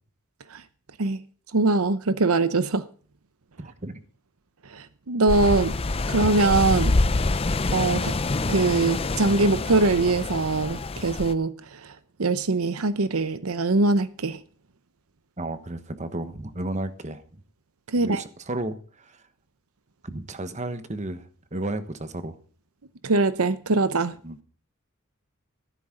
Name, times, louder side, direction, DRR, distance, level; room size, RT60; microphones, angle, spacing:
voice 1, 1.5-2.8 4.7-5.7 6.1-7.0 7.7-8.1 8.5-11.5 11.8-11.9 12.2-14.4 17.9-18.2 23.0-24.1, right 3 dB, 80° right, 0.8 m, -22 dB
voice 2, 3.6-4.0 15.4-17.4 18.0-19.2 20.0-22.4 24.2-24.4, right 2 dB, 35° right, 1.2 m, -33 dB
sound 1, 5.3-11.3, left 3 dB, 25° left, 0.5 m, -26 dB
14.5 x 12.0 x 3.8 m
head